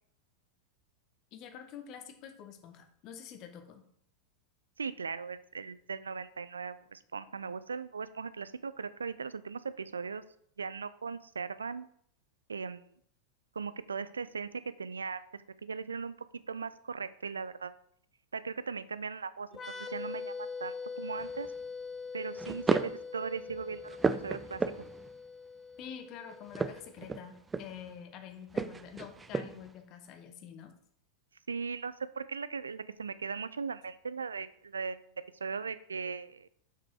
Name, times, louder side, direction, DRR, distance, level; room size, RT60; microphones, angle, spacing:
voice 1, 1.3-3.8 25.8-30.7, left 8 dB, 40° left, 7 dB, 1.2 m, -47 dB
voice 2, 4.8-10.2 10.6-11.9 12.5-12.8 13.5-16.1 16.5-17.7 18.3-19.5 19.8-21.5 22.1-24.0 24.2-24.6 31.5-35.0 35.4-36.5, right 5 dB, 75° right, 15 dB, 0.4 m, -38 dB
sound 1, 19.5-27.0, left 5 dB, 20° left, 1.0 m, -43 dB
sound 2, 21.2-21.5 22.4-23.0 23.5-25.1 26.4-27.9 28.5-29.7, right 4 dB, 15° right, 0.4 m, -34 dB
6.8 x 6.0 x 4.8 m, 0.66 s
figure-of-eight pair, 90°, 0 cm